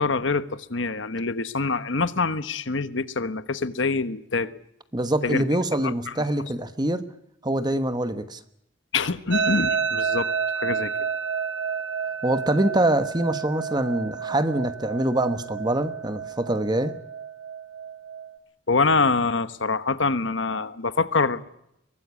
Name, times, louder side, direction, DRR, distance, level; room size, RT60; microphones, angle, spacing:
voice 1, 0.0-4.5 5.2-5.4 5.7-6.1 8.9-10.3 10.6-10.9 18.7-21.4, left 4 dB, 80° left, 1.3 m, -25 dB
voice 2, 4.9-7.1 7.4-8.4 12.2-16.9, right 1 dB, 20° right, 1.2 m, -24 dB
sound 1, 9.3-18.4, right 6 dB, 65° right, 1.7 m, -30 dB
23.5 x 18.0 x 8.4 m
head